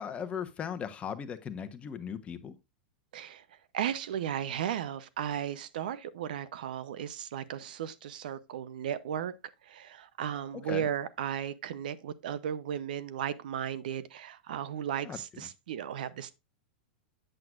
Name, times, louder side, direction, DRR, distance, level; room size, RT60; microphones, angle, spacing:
voice 1, 0.0-2.5 10.7-10.9 15.0-15.5, left 7 dB, 25° left, 1.0 m, -38 dB
voice 2, 3.1-3.4 3.7-9.3 9.6-16.3, right 9 dB, 70° right, 0.6 m, -35 dB
8.8 x 7.6 x 2.4 m
hypercardioid pair, 105°, 5 cm